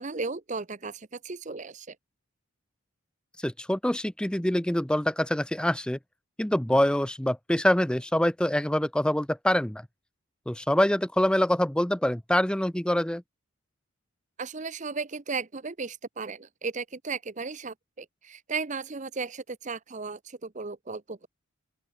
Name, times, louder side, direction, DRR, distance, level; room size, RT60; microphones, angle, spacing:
voice 1, 0.0-2.0 14.4-21.3, right 4 dB, 35° right, 0.7 m, -35 dB
voice 2, 3.4-6.0 6.4-9.9 10.5-13.2, left 1 dB, 5° left, 0.5 m, -25 dB
open air
head